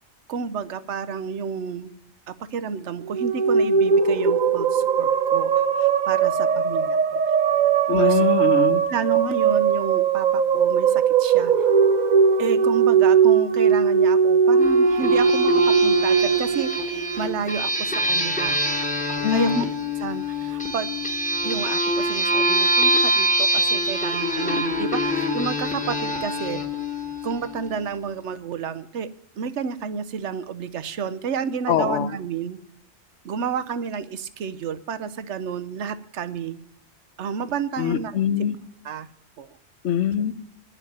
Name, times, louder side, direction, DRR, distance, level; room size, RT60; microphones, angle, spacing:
voice 1, 0.3-1.9 2.3-5.5 5.8-7.2 7.9-8.2 8.9-11.5 12.4-18.6 19.3-19.6 20.0-20.9 21.4-26.6 27.2-29.1 29.4-32.6 33.2-36.6 37.2-38.2 38.8-39.1 39.4-39.5, right 6 dB, 85° right, 13 dB, 1.0 m, -30 dB
sound 1, 3.0-17.5, right 6 dB, 45° right, 0.7 m, -19 dB
voice 2, 7.9-8.8 19.2-19.6 31.7-32.1 37.8-38.6 39.8-40.3, left 8 dB, 80° left, 13 dB, 1.0 m, -23 dB
sound 2, 14.6-27.8, equal, 5° left, 1.2 m, -25 dB
10.0 x 6.5 x 9.0 m, 0.69 s
omnidirectional pair, 1.2 m